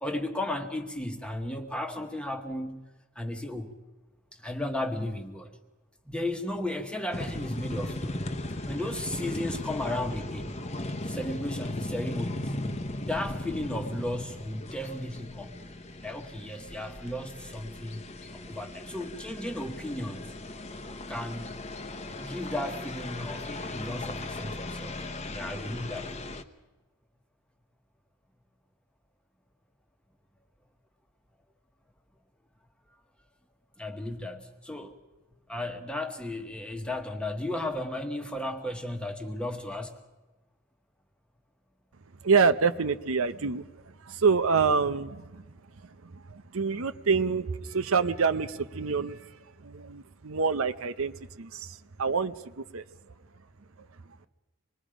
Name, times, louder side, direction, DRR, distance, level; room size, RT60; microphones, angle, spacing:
voice 1, 0.0-2.8 3.1-3.7 4.4-5.5 6.1-8.3 8.7-10.6 11.0-12.5 13.1-15.6 16.0-18.1 18.3-20.4 21.1-21.6 22.1-24.9 25.3-26.1 33.8-34.9 35.5-40.0, left 1 dB, 5° left, 5 dB, 1.4 m, -34 dB
sound 1, 7.1-26.4, left 1 dB, 30° left, 1.0 m, -37 dB
voice 2, 42.2-43.6 44.0-45.4 46.0-49.3 49.6-52.8, right 5 dB, 70° right, 10 dB, 0.7 m, -27 dB
26.0 x 21.0 x 5.1 m, 1.2 s
head